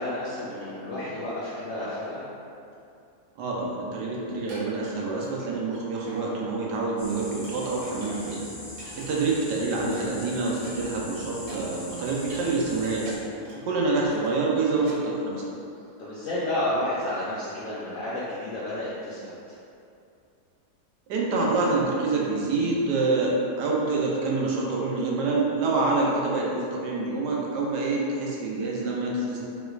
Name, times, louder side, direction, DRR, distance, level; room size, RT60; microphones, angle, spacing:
voice 1, 0.0-2.2 8.9-9.1 13.5-13.7 16.0-19.3, left 1 dB, 75° left, -9 dB, 0.7 m, -31 dB
voice 2, 3.4-8.4 9.0-13.1 13.7-15.4 21.1-29.4, right 3 dB, 80° right, -3 dB, 1.2 m, -26 dB
sound 1, 4.3-5.8 6.1-6.3 6.6-9.1 9.4-12.4 12.7-13.7 14.0-14.3 14.8-15.0, equal, 55° right, 1.3 m, -47 dB
sound 2, 7.0-13.2, left 1 dB, 25° left, 0.5 m, -41 dB
3.2 x 3.0 x 2.3 m, 2.6 s
omnidirectional pair, 1.8 m